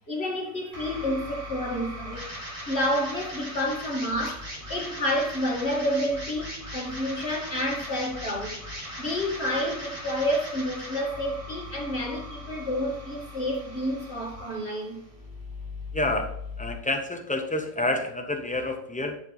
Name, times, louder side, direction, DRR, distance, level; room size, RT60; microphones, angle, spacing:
voice 1, 0.1-2.3 2.7-8.6 9.0-15.0, equal, 40° left, -1 dB, 2.1 m, -29 dB
sound 1, 0.7-16.7, left 1 dB, 20° right, 2.1 m, -39 dB
voice 2, 15.9-16.3 16.6-19.2, left 2 dB, 5° left, 5 dB, 0.7 m, -28 dB
10.5 x 5.6 x 3.9 m, 0.71 s
omnidirectional pair, 1.7 m